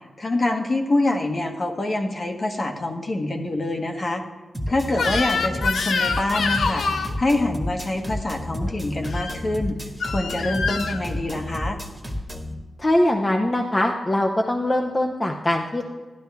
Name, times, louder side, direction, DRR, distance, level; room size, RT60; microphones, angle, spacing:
voice 1, 0.2-4.2 4.7-6.8 7.2-9.8 10.0-11.8, left 2 dB, 45° left, 3 dB, 1.4 m, -25 dB
sound 1, 4.5-12.5, left 1 dB, 5° right, 1.5 m, -31 dB
Crying sobbing / Screech, 4.9-7.1 9.0-9.4 10.0-11.0, left 4 dB, 80° left, 0.7 m, -25 dB
voice 2, 12.8-15.8, left 1 dB, 25° left, 2 dB, 0.8 m, -22 dB
12.0 x 11.5 x 3.5 m, 1.3 s
cardioid pair, 75°, 0 cm